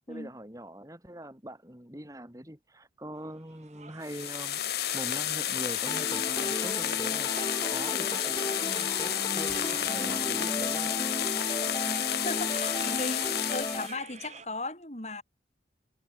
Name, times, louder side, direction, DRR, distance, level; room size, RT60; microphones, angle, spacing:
voice 1, 0.1-10.9, right 1 dB, 20° right, 2.8 m, -43 dB
sound 1, 3.5-14.5, right 5 dB, 40° right, 5.5 m, -48 dB
sound 2, 4.0-13.9, left 11 dB, 65° left, 1.0 m, -31 dB
sound 3, 5.9-13.9, left 1 dB, 20° left, 2.0 m, -35 dB
voice 2, 12.2-15.2, left 2 dB, 40° left, 6.8 m, -36 dB
head